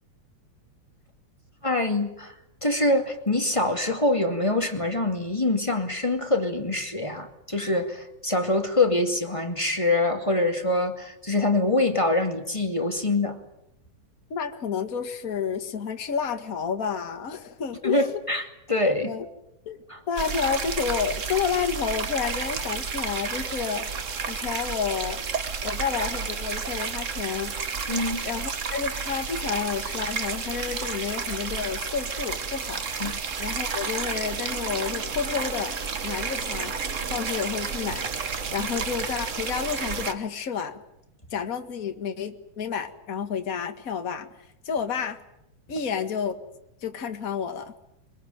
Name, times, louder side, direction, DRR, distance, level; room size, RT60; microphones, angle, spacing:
voice 1, 1.6-2.3 2.6-13.4 17.8-19.1 19.9-20.0 27.9-28.3 33.0-33.2, left 2 dB, 10° left, 4 dB, 1.9 m, -25 dB
voice 2, 14.3-18.2 19.0-19.2 19.6-23.9 24.3-25.2 25.6-27.9 28.2-32.8 33.4-35.7 36.0-36.7 37.1-38.1 38.5-40.8 41.3-44.3 44.6-45.2 45.7-46.3 46.8-47.7, left 7 dB, 35° left, 6 dB, 1.6 m, -30 dB
sound 1, 20.2-40.1, right 5 dB, 70° right, 0.7 m, -31 dB
23.5 x 21.5 x 9.3 m, 0.83 s
omnidirectional pair, 3.5 m